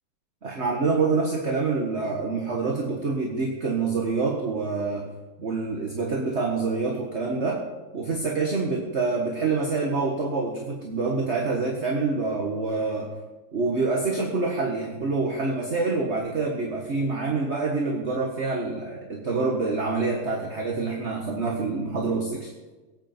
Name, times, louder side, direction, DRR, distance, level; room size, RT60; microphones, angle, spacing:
voice 1, 0.4-5.1 5.4-7.6 7.9-13.1 13.5-22.5, right 3 dB, 35° right, -1 dB, 1.8 m, -26 dB
23.0 x 8.7 x 4.5 m, 1.2 s
omnidirectional pair, 2.3 m